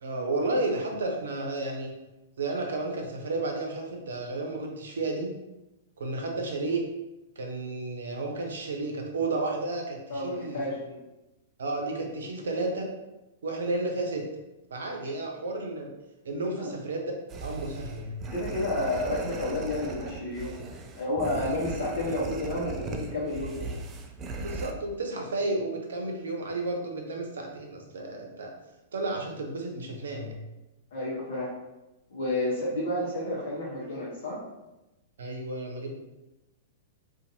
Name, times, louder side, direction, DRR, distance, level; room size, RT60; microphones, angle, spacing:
voice 1, 0.0-1.9 2.4-5.3 6.0-6.9 7.4-10.6 11.6-12.9 13.4-14.3 14.7-15.9 16.2-17.1 17.4-18.2 21.4-21.5 24.3-28.5 28.9-30.4 35.2-35.9, right 2 dB, 75° right, 2 dB, 0.6 m, -32 dB
voice 2, 10.1-10.9 15.0-15.1 16.6-16.7 18.3-20.6 21.0-23.8 30.9-31.5 32.1-34.4, left 1 dB, 65° left, -6 dB, 0.9 m, -31 dB
sound 1, 17.3-24.7, right 3 dB, 30° right, 0.3 m, -38 dB
2.6 x 2.4 x 2.7 m, 0.98 s
hypercardioid pair, 110°, 0 cm